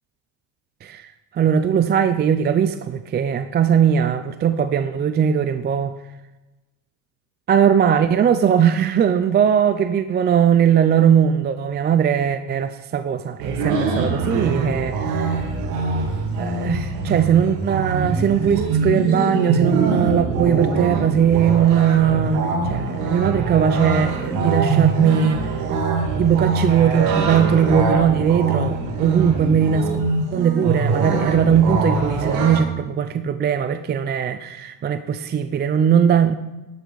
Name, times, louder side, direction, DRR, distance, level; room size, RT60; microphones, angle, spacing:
voice 1, 0.8-6.0 7.5-15.5 16.4-25.5 26.2-29.9 30.3-36.3, right 8 dB, 25° right, 10 dB, 0.4 m, -19 dB
sound 1, 13.4-32.6, right 3 dB, 85° right, 3.4 m, -23 dB
12.0 x 11.0 x 4.0 m, 1.1 s
supercardioid pair, 120°, 46 cm